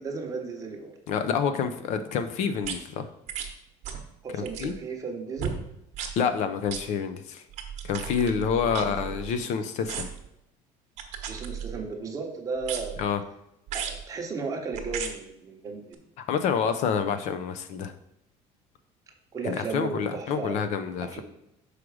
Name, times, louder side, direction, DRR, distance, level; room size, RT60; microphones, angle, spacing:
voice 1, 0.0-0.9 4.2-5.6 8.5-9.5 11.2-13.0 13.7-16.0 19.3-20.7 21.0-21.2, right 4 dB, 20° right, 1 dB, 1.0 m, -35 dB
voice 2, 1.1-3.1 4.3-4.7 6.0-7.4 7.8-10.1 13.0-13.2 16.3-17.9 19.5-21.2, left 7 dB, 50° left, 10 dB, 0.5 m, -28 dB
sound 1, 2.6-2.8 3.3-3.5 3.8-4.1 4.4-4.8 5.4-5.6 5.9-6.1 6.7-6.8 7.5-9.4 9.9-10.3 11.0-11.9 12.6-13.1 13.7-14.0 14.7-15.1 15.9-16.0, right 8 dB, 50° right, 1.0 m, -35 dB
6.2 x 4.9 x 4.8 m, 0.82 s
cardioid pair, 170°, 15 cm